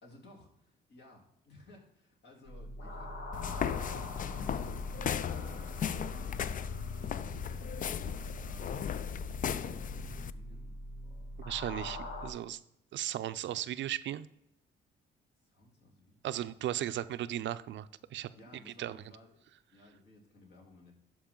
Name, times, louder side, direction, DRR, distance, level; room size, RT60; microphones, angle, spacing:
voice 1, 0.0-8.9 9.5-11.5 15.3-16.4 18.1-19.4 19.7-20.9, left 2 dB, 60° left, -1 dB, 3.0 m, -58 dB
sound 1, 2.5-12.3, equal, 75° left, 1.6 m, -43 dB
sound 2, 3.3-10.3, left 8 dB, 45° left, 0.4 m, -36 dB
voice 2, 11.4-12.6 12.9-14.3 16.2-18.3 18.8-19.0, right 12 dB, 70° right, 14 dB, 0.5 m, -36 dB
12.0 x 4.8 x 3.7 m, 0.77 s
cardioid pair, 90°, 20 cm